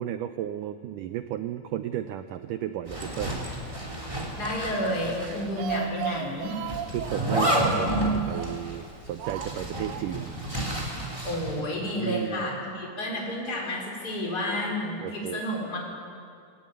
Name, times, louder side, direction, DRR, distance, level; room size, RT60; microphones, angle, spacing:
voice 1, 0.0-3.4 5.1-5.5 6.7-10.4 12.0-12.5 15.0-15.4, right 11 dB, 85° right, 10 dB, 1.8 m, -34 dB
Zipper (clothing), 2.9-5.4 5.7-5.8 6.7-11.6, right 1 dB, 10° right, 2.9 m, -30 dB
voice 2, 4.4-6.5 11.2-15.8, left 1 dB, 25° left, -2 dB, 4.8 m, -30 dB
Speech, 5.3-8.8 9.2-10.3 10.6-10.7 11.0-11.1, right 9 dB, 70° right, 2.6 m, -37 dB
21.0 x 16.5 x 9.5 m, 2.3 s
omnidirectional pair, 4.5 m